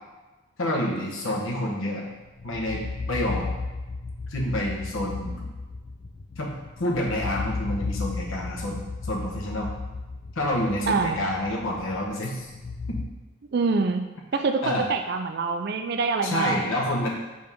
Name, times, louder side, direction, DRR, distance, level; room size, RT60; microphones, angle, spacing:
voice 1, 0.6-2.0 2.4-3.5 4.3-5.5 6.4-9.7 10.3-12.5 12.9-13.0 14.6-14.9 16.2-17.1, left 1 dB, 70° left, -2 dB, 0.9 m, -28 dB
sound 1, 2.0-13.0, left 3 dB, 35° left, 0.4 m, -34 dB
voice 2, 10.9-11.2 13.5-14.0 14.3-16.6, right 4 dB, 50° right, 6 dB, 0.4 m, -25 dB
5.2 x 3.4 x 5.3 m, 1.2 s
head